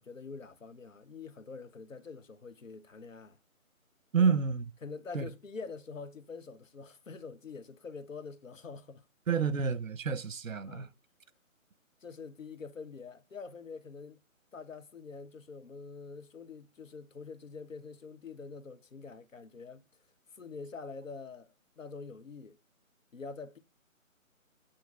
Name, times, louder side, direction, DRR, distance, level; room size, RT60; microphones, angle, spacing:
voice 1, 0.0-3.4 4.2-4.4 4.8-9.1 10.7-10.9 12.0-14.2 14.5-19.8 20.3-21.5 21.8-22.6 23.1-23.6, left 4 dB, 65° left, 1.1 m, -45 dB
voice 2, 4.1-4.6 5.1-5.3 9.3-10.9, right 6 dB, 70° right, 0.9 m, -29 dB
8.6 x 3.0 x 5.9 m
figure-of-eight pair, 160°, 42 cm